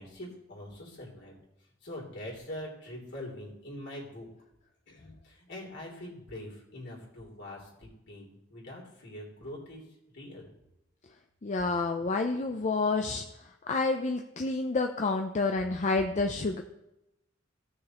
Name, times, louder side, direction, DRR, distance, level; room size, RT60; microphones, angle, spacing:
voice 1, 0.0-1.4 1.8-4.3 4.9-9.9 10.1-10.5, left 1 dB, 60° left, -2 dB, 3.1 m, -43 dB
voice 2, 11.4-13.2 13.6-16.6, left 3 dB, 40° left, 4 dB, 0.5 m, -29 dB
16.5 x 6.4 x 3.0 m, 0.88 s
head